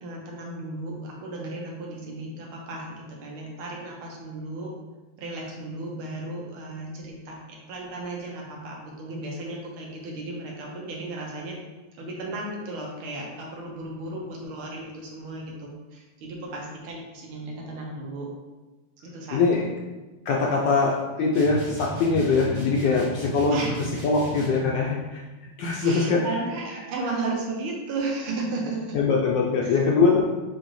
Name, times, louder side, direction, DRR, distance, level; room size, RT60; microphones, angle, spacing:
voice 1, 0.0-4.7 5.2-7.4 7.7-11.6 12.0-18.3 19.0-19.6 21.2-21.3 23.5-23.8 25.8-28.9 29.6-29.8, right 2 dB, 80° right, -1 dB, 1.7 m, -34 dB
voice 2, 19.3-19.7 20.3-23.6 24.0-25.2 25.6-26.2 28.9-30.2, left 4 dB, 75° left, -2 dB, 1.0 m, -22 dB
sound 1, 21.3-24.7, right 3 dB, 30° right, 1.3 m, -35 dB
6.1 x 2.7 x 3.1 m, 1.2 s
omnidirectional pair, 2.3 m